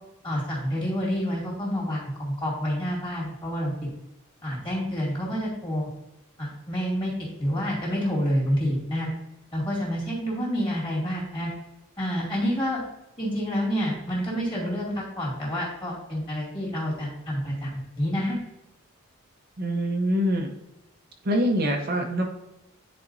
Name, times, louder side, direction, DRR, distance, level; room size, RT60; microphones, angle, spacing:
voice 1, 0.2-3.7 4.4-5.9 6.4-9.1 9.5-11.5 12.0-12.8 13.2-18.4, equal, 25° left, -4 dB, 2.3 m, -28 dB
voice 2, 19.6-20.5 21.2-22.2, equal, 45° right, 2 dB, 0.7 m, -24 dB
9.8 x 4.3 x 2.6 m, 0.95 s
head